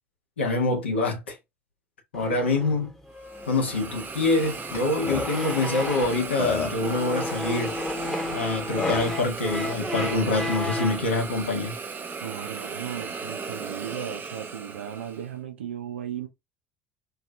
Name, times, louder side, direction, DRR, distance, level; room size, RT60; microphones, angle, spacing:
voice 1, 0.4-1.4 2.1-2.9 3.5-7.8 8.3-11.8, left 3 dB, 85° left, 1.2 m, -25 dB
sound 1, 2.1-6.3 6.8-11.1, left 1 dB, 5° left, 1.1 m, -34 dB
Hiss, 3.2-15.3, right 5 dB, 35° right, 0.7 m, -36 dB
Burping eructation, 4.7-4.8 5.1-5.3 6.0-6.1 6.4-6.9 8.3-8.4 8.8-9.1, left 5 dB, 35° left, 1.0 m, -29 dB
voice 2, 12.2-16.3, right 9 dB, 85° right, 0.7 m, -36 dB
3.0 x 2.9 x 2.4 m
hypercardioid pair, 65°, 6 cm